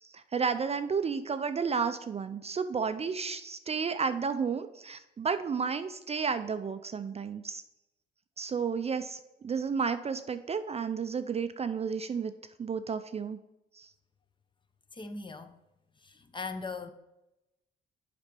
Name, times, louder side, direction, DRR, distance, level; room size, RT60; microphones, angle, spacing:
voice 1, 0.1-7.6 8.4-12.3 12.6-13.4 13.8-13.9, right 5 dB, 30° right, 0.4 m, -32 dB
voice 2, 14.9-15.5 16.0-16.9, left 4 dB, 25° left, 0.7 m, -39 dB
7.1 x 5.1 x 5.2 m
cardioid pair, 90°, 20 cm